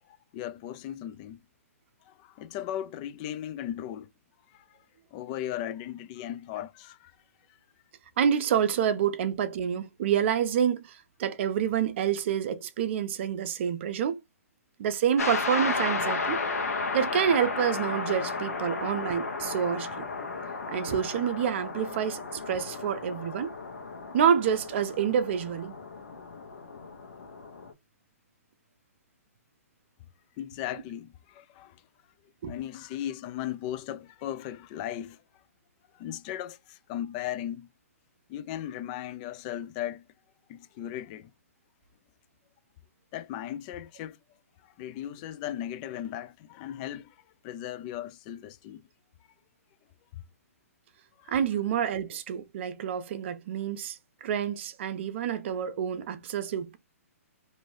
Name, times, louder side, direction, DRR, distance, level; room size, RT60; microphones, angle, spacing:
voice 1, 0.1-1.4 2.1-4.1 4.5-4.6 5.1-7.1 30.4-31.8 32.5-35.2 35.9-37.7 38.3-40.0 40.5-41.3 43.1-44.2 44.6-48.9 51.2-51.3, left 11 dB, 30° left, 0.4 m, -37 dB
voice 2, 8.2-14.2 14.8-16.4 16.9-20.1 20.7-23.5 24.1-25.8 32.4-32.5 51.3-54.0 54.2-56.8, right 8 dB, 50° right, 0.6 m, -28 dB
sound 1, 15.2-27.7, left 4 dB, 75° left, 0.9 m, -34 dB
3.1 x 2.7 x 2.6 m
hypercardioid pair, 140°, 8 cm